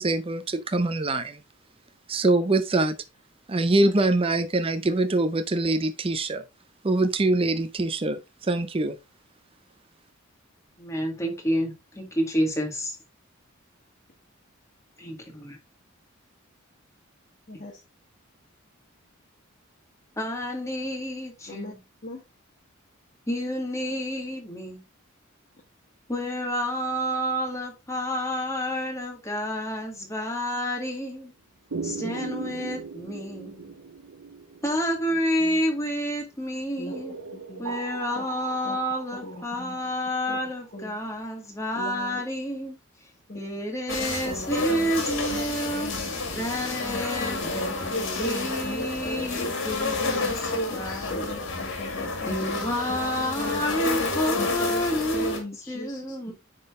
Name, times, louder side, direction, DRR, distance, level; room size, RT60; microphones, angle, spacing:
voice 1, 0.0-1.4 2.1-3.0 3.5-6.4 6.8-9.0, right 2 dB, 25° right, 0.6 m, -24 dB
voice 2, 10.8-13.0 15.0-15.6 17.5-17.6 20.2-21.8 23.3-24.8 26.1-31.3 31.8-33.8 34.6-37.2 37.6-42.8 43.3-45.9 46.3-51.6 52.3-55.4 55.7-56.3, equal, 15° left, 1.9 m, -29 dB
voice 3, 17.5-17.8 21.5-21.7 22.0-22.2 32.0-32.2 35.1-35.6 36.8-36.9 37.3-37.7 38.1-38.2 38.6-38.8 39.2-39.8 40.3-40.4 40.7-41.0 41.8-42.2 43.3-43.4 44.0-44.9 45.3-46.1 46.8-49.5 50.2-53.8 54.1-56.3, left 1 dB, 40° left, 1.2 m, -38 dB
sound 1, 31.7-36.0 36.9-40.7, right 5 dB, 80° right, 0.7 m, -39 dB
sound 2, 43.9-55.4, left 3 dB, 60° left, 2.2 m, -30 dB
9.6 x 3.9 x 3.6 m
head